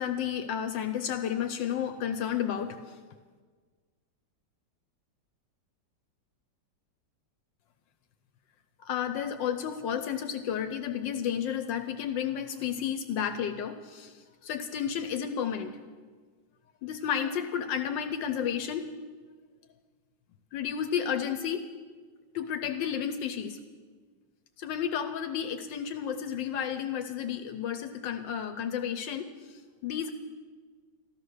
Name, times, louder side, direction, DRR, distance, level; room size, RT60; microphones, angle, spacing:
voice 1, 0.0-3.0 8.8-15.8 16.8-18.9 20.5-21.7 22.3-23.6 24.6-30.1, left 8 dB, 80° left, 8 dB, 1.4 m, -32 dB
14.0 x 13.0 x 6.4 m, 1.5 s
omnidirectional pair, 2.0 m